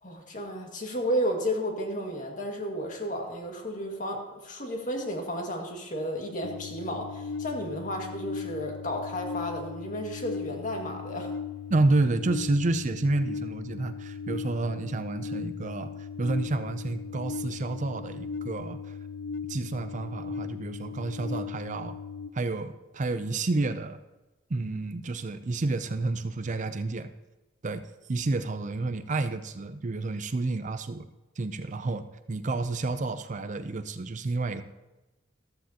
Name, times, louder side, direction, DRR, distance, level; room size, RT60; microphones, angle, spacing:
voice 1, 0.0-11.3, equal, 45° left, 1 dB, 2.0 m, -32 dB
sound 1, 6.4-22.3, left 6 dB, 60° left, 0.4 m, -38 dB
voice 2, 11.7-19.0 19.5-22.0 22.3-24.0 24.5-27.1 27.6-27.8 28.1-31.1 31.4-34.6, right 2 dB, 40° right, 10 dB, 0.5 m, -30 dB
13.5 x 13.5 x 2.9 m, 1.1 s
head